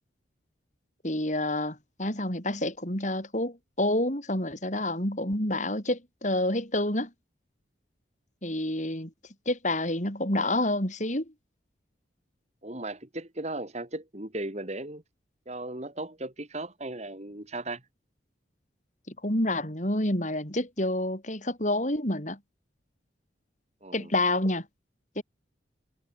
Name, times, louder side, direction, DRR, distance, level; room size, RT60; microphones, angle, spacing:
voice 1, 1.0-7.1 8.4-9.1 9.5-11.3 19.2-22.4 23.9-24.6 25.2-25.3, left 1 dB, 40° left, 6.4 m, -28 dB
voice 2, 12.6-15.0 15.5-17.8 23.8-24.1, right 2 dB, 35° right, 2.7 m, -36 dB
head